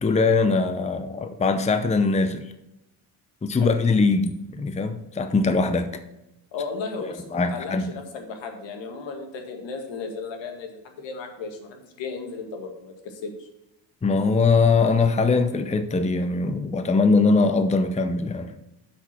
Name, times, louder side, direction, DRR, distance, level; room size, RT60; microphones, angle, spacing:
voice 1, 0.0-2.5 3.4-6.0 7.3-7.9 14.0-18.5, left 4 dB, 15° left, 9 dB, 0.7 m, -21 dB
voice 2, 6.5-13.5, left 4 dB, 75° left, 4 dB, 2.0 m, -35 dB
8.0 x 6.1 x 6.0 m, 0.93 s
cardioid pair, 100°, 45 cm